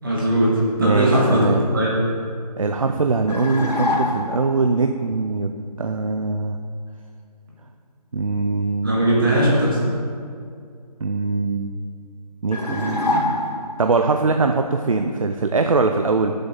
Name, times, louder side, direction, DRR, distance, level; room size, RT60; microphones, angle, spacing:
voice 1, 0.0-2.0 8.8-9.9, right 1 dB, 30° right, -5 dB, 2.1 m, -19 dB
voice 2, 0.8-1.6 2.6-5.5 5.8-6.6 8.1-9.0 11.0-11.7 12.4-13.0 13.8-16.3, right 3 dB, 55° right, 6 dB, 0.5 m, -22 dB
sound 1, 3.3-4.5 12.5-13.8, left 2 dB, 70° left, 1.8 m, -24 dB
11.0 x 6.8 x 3.9 m, 2.3 s
figure-of-eight pair, 180°, 21 cm